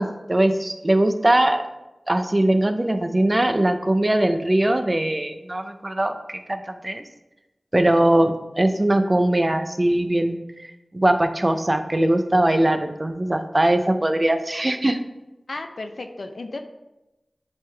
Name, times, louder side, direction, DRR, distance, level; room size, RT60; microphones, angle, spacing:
voice 1, 0.0-1.6 2.1-7.0 7.7-10.4 10.9-15.0, right 1 dB, 30° right, 7 dB, 0.6 m, -21 dB
voice 2, 15.5-16.6, left 2 dB, 80° left, 6 dB, 0.6 m, -33 dB
10.5 x 3.7 x 3.3 m, 0.98 s
wide cardioid pair, 55°, 0 cm